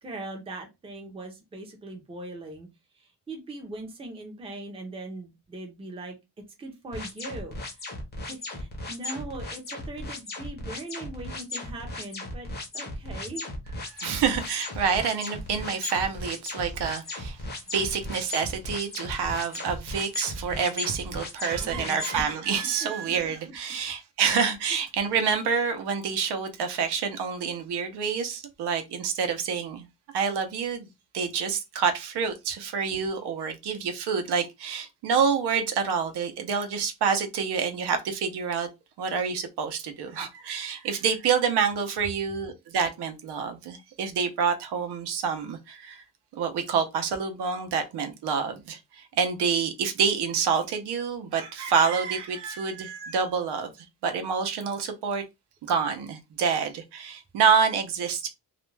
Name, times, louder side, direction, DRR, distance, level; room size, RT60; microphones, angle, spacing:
voice 1, 0.0-2.7 3.0-6.2 6.6-7.9 8.2-12.5 12.7-13.4 21.5-22.0 22.8-22.9, right 2 dB, 15° right, 0.5 m, -40 dB
sound 1, 6.9-22.2, left 2 dB, 25° left, 0.6 m, -36 dB
voice 2, 13.9-17.4 17.7-29.9 30.1-30.9 31.1-38.7 39.0-46.0 46.3-53.7 54.0-55.2 55.6-58.3, right 6 dB, 80° right, 0.7 m, -27 dB
2.4 x 2.1 x 3.1 m
wide cardioid pair, 175°, 40 cm